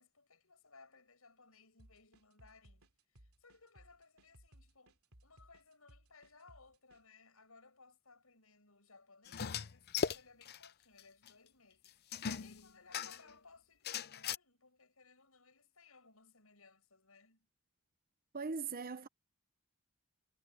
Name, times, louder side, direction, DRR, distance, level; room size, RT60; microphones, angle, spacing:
voice 1, 0.0-2.9 3.1-5.0 5.2-17.5, left 4 dB, 75° left, 7.7 m, -63 dB
sound 1, 1.8-7.0, right 1 dB, 85° right, 3.0 m, -63 dB
sound 2, 9.3-10.7 11.0-11.1 11.3-11.4 12.1-13.3 13.8-14.4, left 6 dB, 50° left, 0.7 m, -38 dB
voice 2, 18.3-19.1, right 4 dB, 45° right, 1.0 m, -40 dB
head